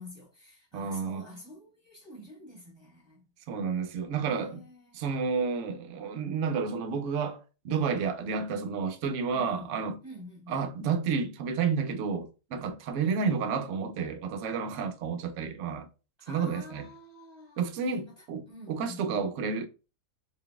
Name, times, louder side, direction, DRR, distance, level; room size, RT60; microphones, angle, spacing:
voice 1, 0.0-3.3 4.3-5.0 9.3-9.7 10.0-10.7 16.2-19.2, left 1 dB, 15° right, 1.3 m, -48 dB
voice 2, 0.7-1.2 3.5-4.6 4.9-10.0 10.5-15.9 16.3-16.9 17.6-19.7, right 5 dB, 65° right, 0.8 m, -31 dB
3.9 x 3.9 x 2.2 m
omnidirectional pair, 1.8 m